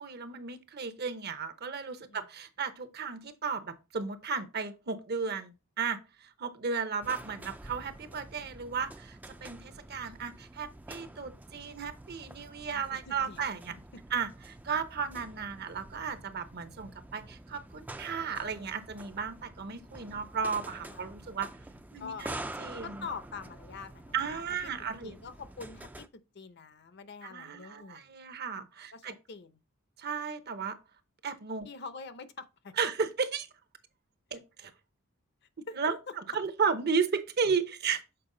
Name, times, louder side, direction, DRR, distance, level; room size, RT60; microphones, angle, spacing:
voice 1, 0.0-13.7 14.1-21.5 21.9-23.1 24.1-25.1 27.3-29.1 30.0-30.8 31.2-31.7 32.8-33.5 34.3-34.7 35.8-36.0 36.3-38.0, right 5 dB, 50° right, 0.8 m, -34 dB
sound 1, 7.0-26.1, right 1 dB, 10° right, 0.3 m, -47 dB
voice 2, 12.7-13.4 20.9-21.3 22.0-22.3 22.8-24.4 25.0-26.1 26.3-28.1 28.9-29.6 31.6-32.7 35.7-35.8, left 5 dB, 55° left, 0.7 m, -45 dB
6.8 x 4.6 x 3.8 m
head